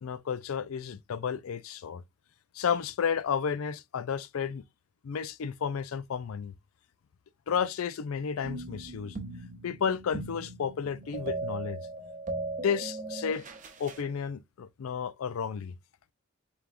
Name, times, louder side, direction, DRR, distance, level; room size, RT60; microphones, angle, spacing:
voice 1, 0.0-2.0 2.5-4.6 5.0-6.5 7.5-9.2 9.6-11.8 12.6-13.4 13.8-15.7, left 7 dB, 80° left, 0.4 m, -32 dB
sound 1, 8.4-14.1, right 2 dB, 35° right, 0.8 m, -38 dB
4.4 x 3.5 x 2.4 m
head